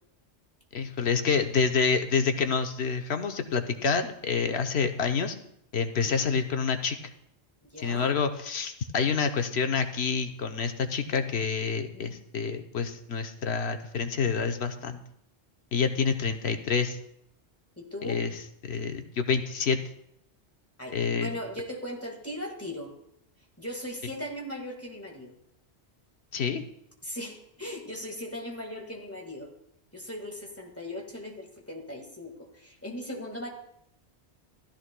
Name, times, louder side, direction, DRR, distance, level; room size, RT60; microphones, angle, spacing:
voice 1, 0.7-5.3 5.7-7.0 7.8-15.0 15.7-17.0 18.0-18.3 18.7-19.8 20.9-21.3 26.3-26.6, left 5 dB, 70° left, 7 dB, 1.1 m, -27 dB
voice 2, 5.9-6.3 7.7-8.1 11.9-12.2 17.8-18.3 20.8-22.9 23.6-25.3 27.0-29.5 29.9-33.5, left 1 dB, 10° left, 0 dB, 1.7 m, -38 dB
15.5 x 13.0 x 2.2 m, 0.75 s
omnidirectional pair, 1.2 m